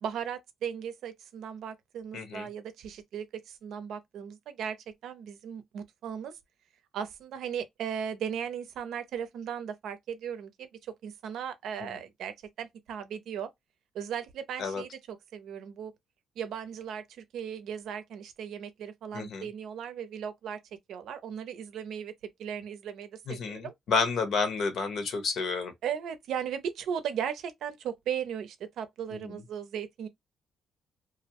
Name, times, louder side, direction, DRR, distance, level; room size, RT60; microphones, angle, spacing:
voice 1, 0.0-6.3 6.9-13.5 13.9-15.9 16.4-20.6 20.9-22.1 22.4-23.7 25.8-30.1, right 8 dB, 75° right, 0.5 m, -37 dB
voice 2, 2.1-2.5 11.8-11.9 14.6-14.8 19.1-19.5 23.3-25.7 29.1-29.3, left 4 dB, 70° left, 0.9 m, -30 dB
2.5 x 2.0 x 2.8 m
cardioid pair, 90°, 0 cm